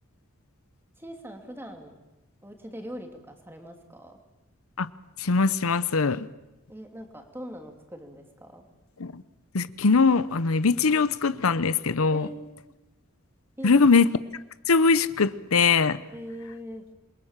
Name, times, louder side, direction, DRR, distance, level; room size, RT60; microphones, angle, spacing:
voice 1, 1.0-1.9 2.4-4.2 6.7-8.6 12.1-12.7 13.6-13.8 16.1-16.8, equal, 10° right, 4 dB, 2.8 m, -41 dB
voice 2, 5.2-6.3 9.0-9.2 9.5-12.3 13.6-14.1 14.7-16.0, left 4 dB, 85° left, 15 dB, 0.8 m, -21 dB
27.5 x 22.5 x 7.4 m, 1.0 s
head